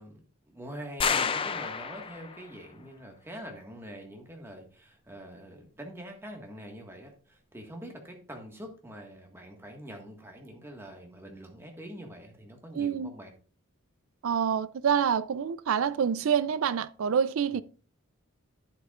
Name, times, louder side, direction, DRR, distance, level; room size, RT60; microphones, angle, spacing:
voice 1, 0.0-13.3, equal, 10° right, 1.6 m, -45 dB
sound 1, 1.0-2.5, left 6 dB, 25° left, 0.4 m, -29 dB
voice 2, 12.7-13.1 14.2-17.6, right 7 dB, 70° right, 0.4 m, -27 dB
11.5 x 8.1 x 2.4 m
head